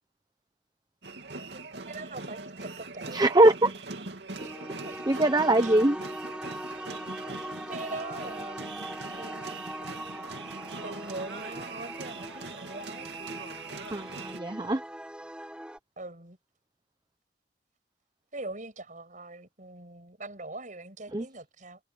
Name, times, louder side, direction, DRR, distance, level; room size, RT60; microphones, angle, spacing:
sound 1, 1.0-14.4, right 3 dB, 80° right, 2.6 m, -42 dB
voice 1, 1.5-3.3 4.4-4.5 4.8-5.2 5.6-5.8 7.7-9.6 10.8-13.1 16.0-16.4 18.3-21.8, right 2 dB, 45° right, 7.2 m, -42 dB
voice 2, 3.1-3.7 5.1-6.0 13.9-14.8 21.1-21.3, right 1 dB, 25° right, 0.8 m, -22 dB
sound 2, 4.4-15.8, right 1 dB, 5° right, 5.0 m, -41 dB
head